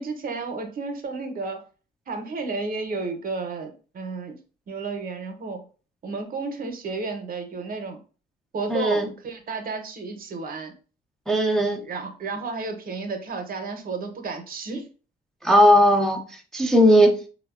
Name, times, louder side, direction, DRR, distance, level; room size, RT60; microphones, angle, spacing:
voice 1, 0.0-1.6 2.1-4.4 4.7-5.6 6.0-8.0 8.5-10.7 11.8-14.9 16.8-17.1, right 4 dB, 45° right, 6 dB, 0.6 m, -32 dB
voice 2, 8.7-9.1 11.3-11.8 15.4-16.2 16.5-17.1, equal, ahead, 1 dB, 0.4 m, -17 dB
3.4 x 2.0 x 2.3 m, 0.37 s
cardioid pair, 90°, 20 cm